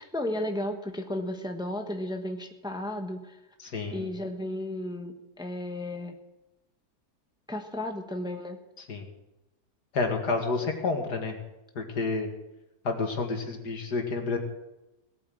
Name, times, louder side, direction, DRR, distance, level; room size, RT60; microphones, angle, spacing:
voice 1, 0.0-3.4 3.9-6.2 7.5-8.6, left 1 dB, 5° right, 5 dB, 1.1 m, -34 dB
voice 2, 3.6-4.1 8.9-9.1 9.9-11.3 11.8-12.3 12.8-14.4, left 3 dB, 90° left, 4 dB, 2.6 m, -29 dB
18.0 x 8.7 x 7.8 m, 0.96 s
omnidirectional pair, 1.7 m